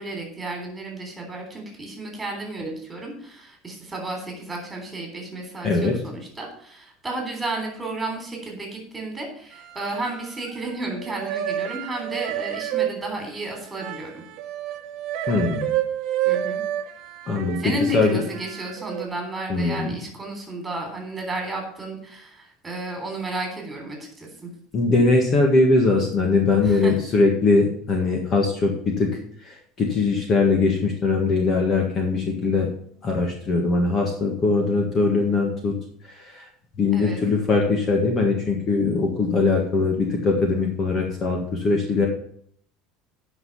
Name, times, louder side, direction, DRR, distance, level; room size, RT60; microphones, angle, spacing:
voice 1, 0.0-14.1 16.3-16.6 17.6-24.5 26.6-27.0 36.9-37.2, right 2 dB, 10° right, 1 dB, 3.5 m, -32 dB
sound 1, 9.5-10.7 11.0-19.0, right 12 dB, 55° right, 1.1 m, -30 dB
voice 2, 15.3-15.7 17.3-17.6 17.9-18.2 19.5-19.9 24.7-29.2 29.5-32.7 33.0-35.7 36.4-36.5 36.8-42.1, left 3 dB, 30° left, 1 dB, 1.7 m, -21 dB
9.4 x 5.9 x 7.2 m, 0.63 s
cardioid pair, 165°, 0 cm